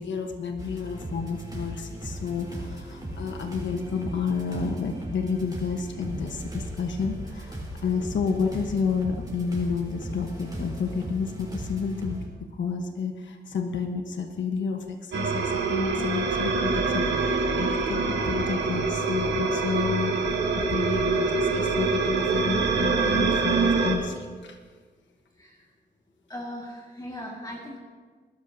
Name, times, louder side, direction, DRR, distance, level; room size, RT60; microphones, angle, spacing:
voice 1, 0.0-24.6, left 5 dB, 85° left, 4 dB, 1.2 m, -30 dB
sound 1, 0.6-12.3, right 1 dB, 20° right, 4.1 m, -37 dB
sound 2, 15.1-24.0, right 4 dB, 80° right, 1.8 m, -25 dB
voice 2, 26.3-27.8, equal, 20° left, -2 dB, 1.9 m, -38 dB
21.0 x 12.5 x 2.8 m, 1.5 s
cardioid pair, 80°, 18 cm